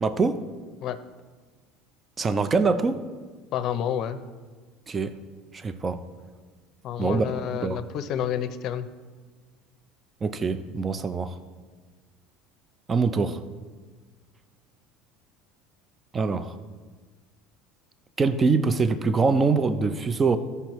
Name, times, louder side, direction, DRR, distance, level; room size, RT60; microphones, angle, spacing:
voice 1, 0.0-0.4 2.2-3.0 4.9-5.2 5.5-6.0 7.0-7.8 10.2-11.4 12.9-13.4 16.1-16.6 18.2-20.4, right 4 dB, 25° right, 11 dB, 0.5 m, -24 dB
voice 2, 3.5-4.2 6.8-8.9, left 9 dB, 55° left, 10 dB, 0.6 m, -29 dB
14.0 x 5.5 x 3.0 m, 1.4 s
supercardioid pair, 110°, 0 cm